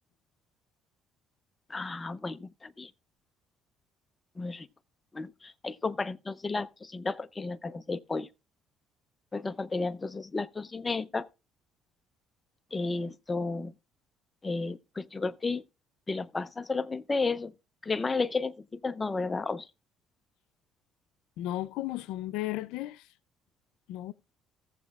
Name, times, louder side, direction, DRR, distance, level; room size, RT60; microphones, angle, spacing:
voice 1, 1.7-2.9 4.4-4.7 5.1-8.3 9.3-11.3 12.7-13.7 14.4-15.6 16.1-17.5 17.8-19.7, left 3 dB, 20° left, 0.5 m, -32 dB
voice 2, 21.4-23.1 23.9-24.1, left 15 dB, 90° left, 0.5 m, -34 dB
17.0 x 7.2 x 2.3 m
cardioid pair, 105°, 0 cm